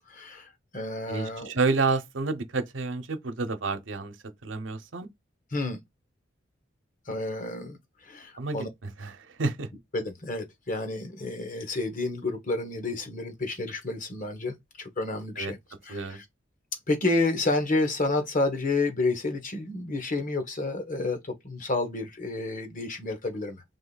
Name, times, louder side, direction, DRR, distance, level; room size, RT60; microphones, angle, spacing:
voice 1, 0.1-1.5 5.5-5.8 7.1-7.8 8.0-8.7 9.9-15.6 15.8-16.2 16.9-23.6, left 2 dB, 45° left, 1.2 m, -30 dB
voice 2, 1.1-4.2 4.4-5.1 8.4-9.7 15.4-15.5 15.9-16.2, right 3 dB, 80° right, 0.8 m, -29 dB
3.7 x 3.1 x 4.0 m
head